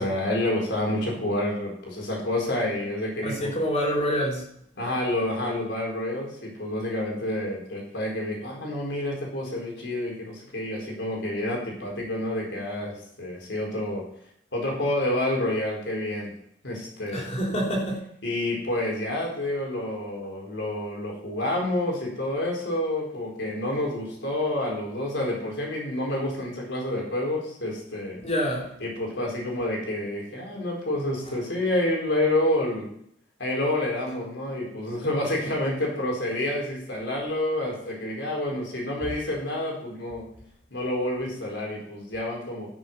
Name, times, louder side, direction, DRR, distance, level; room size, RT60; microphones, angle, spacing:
voice 1, 0.0-3.5 4.8-14.0 14.5-16.3 16.6-17.3 18.2-28.2 28.8-32.9 33.4-40.3 40.7-42.7, left 1 dB, 75° left, -2 dB, 4.4 m, -28 dB
voice 2, 3.2-4.4 17.1-18.0 28.2-28.7, equal, 40° left, -2 dB, 3.7 m, -26 dB
13.5 x 6.8 x 5.7 m, 0.70 s
head